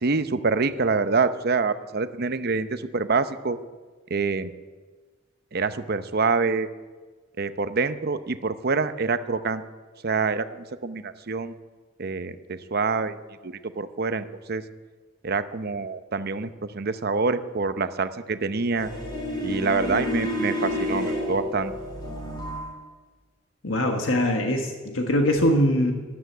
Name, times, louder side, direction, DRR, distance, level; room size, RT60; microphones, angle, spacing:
voice 1, 0.0-3.6 4.1-4.5 5.5-6.7 7.4-9.6 10.0-11.5 12.0-13.2 13.4-14.6 15.2-18.9 19.4-21.7, right 4 dB, 50° right, 11 dB, 0.7 m, -26 dB
sound 1, 18.8-22.7, left 1 dB, 20° left, 3.4 m, -29 dB
voice 2, 23.6-25.9, left 1 dB, 85° left, 3 dB, 1.6 m, -22 dB
13.0 x 11.5 x 8.1 m, 1.4 s
head